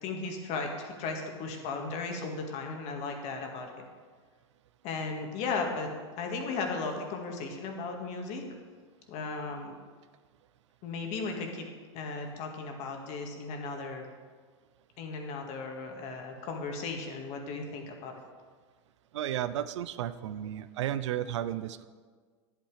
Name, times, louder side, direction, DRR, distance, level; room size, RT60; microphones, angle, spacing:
voice 1, 0.0-3.8 4.8-5.9 6.2-8.4 9.1-9.7 10.8-11.7 11.9-14.1 15.0-18.2, left 4 dB, 50° left, 3 dB, 1.9 m, -36 dB
voice 2, 19.1-21.8, right 11 dB, 80° right, 14 dB, 0.6 m, -33 dB
10.5 x 8.4 x 4.9 m, 1.5 s
hypercardioid pair, 115°, 15 cm